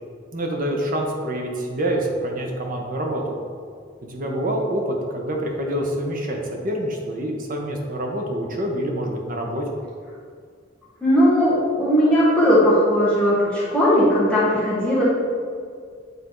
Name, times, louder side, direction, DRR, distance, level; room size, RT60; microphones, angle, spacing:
voice 1, 0.3-3.2 4.1-9.6, right 1 dB, 45° right, 1 dB, 0.9 m, -26 dB
voice 2, 11.0-15.0, equal, 5° left, -9 dB, 1.5 m, -18 dB
8.2 x 3.5 x 3.8 m, 2.1 s
head